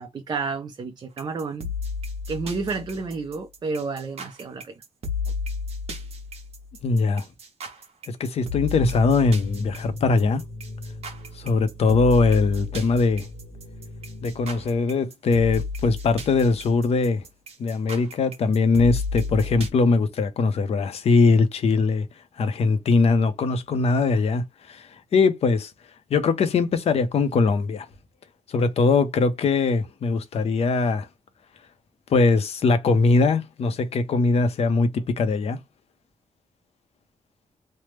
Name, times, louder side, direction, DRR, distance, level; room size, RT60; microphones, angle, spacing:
voice 1, 0.0-1.7 2.3-4.8, right 4 dB, 35° right, 0.5 m, -31 dB
sound 1, 1.2-19.7, left 4 dB, 55° right, 1.0 m, -33 dB
voice 2, 6.8-7.2 8.1-10.4 11.4-13.2 14.2-17.2 17.6-22.1 22.4-25.7 26.1-27.9 28.5-31.1 32.1-35.6, left 4 dB, 55° left, 0.6 m, -21 dB
sound 2, 9.2-14.8, left 2 dB, 70° left, 1.0 m, -39 dB
3.3 x 2.0 x 3.0 m
wide cardioid pair, 160°, 13 cm